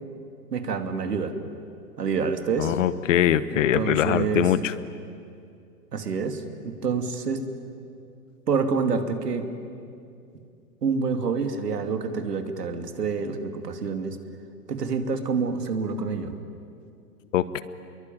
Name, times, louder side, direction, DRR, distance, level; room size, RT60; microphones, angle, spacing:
voice 1, 0.5-1.3 2.0-2.8 3.5-4.5 5.9-7.4 8.5-9.5 10.8-14.2 14.7-16.3, right 5 dB, 80° right, 7 dB, 2.7 m, -27 dB
voice 2, 2.6-4.7 17.3-17.6, left 11 dB, 50° left, 15 dB, 1.2 m, -22 dB
28.0 x 22.5 x 9.1 m, 2.5 s
hypercardioid pair, 120°, 47 cm